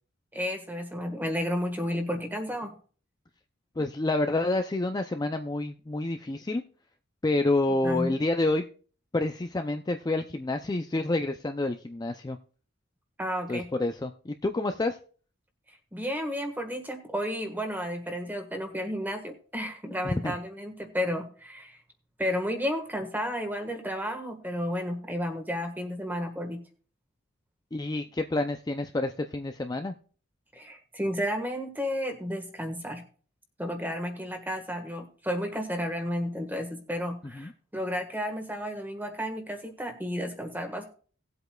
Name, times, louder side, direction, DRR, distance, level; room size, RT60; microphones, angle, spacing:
voice 1, 0.3-2.7 7.7-8.1 13.2-13.7 15.9-21.8 22.2-26.6 30.5-33.0 33.6-40.8, equal, 10° right, 6 dB, 1.5 m, -32 dB
voice 2, 3.8-6.6 7.2-8.6 9.1-12.4 13.5-15.0 27.7-29.9 37.3-37.5, left 2 dB, 20° left, 6 dB, 0.4 m, -28 dB
18.5 x 8.0 x 2.3 m, 0.42 s
head